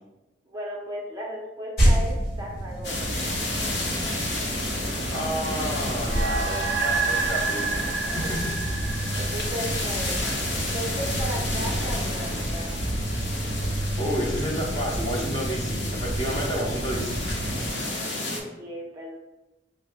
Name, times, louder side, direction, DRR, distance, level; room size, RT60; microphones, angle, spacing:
voice 1, 0.5-3.1 8.2-8.3 8.8-10.2 10.7-12.7 18.2-19.2, equal, 20° right, -3 dB, 0.5 m, -36 dB
sound 1, 1.8-17.7, right 1 dB, 55° left, 1.0 m, -29 dB
sound 2, 2.8-18.4, left 1 dB, 75° left, 0.8 m, -32 dB
voice 2, 5.1-7.8 8.1-8.5 14.0-17.1, equal, 25° left, -3 dB, 0.7 m, -30 dB
sound 3, 6.0-10.7, right 5 dB, 80° right, 0.4 m, -29 dB
3.6 x 2.0 x 4.3 m, 1.0 s
head